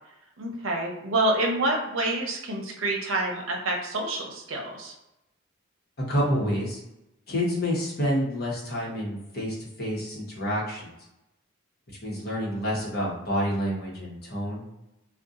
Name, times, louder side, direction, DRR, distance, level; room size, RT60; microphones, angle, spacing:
voice 1, 0.4-4.9, right 2 dB, 70° right, 1 dB, 0.7 m, -27 dB
voice 2, 6.1-6.8 7.3-10.9 12.0-14.6, equal, 50° left, -4 dB, 1.0 m, -28 dB
2.6 x 2.3 x 3.6 m, 0.91 s
head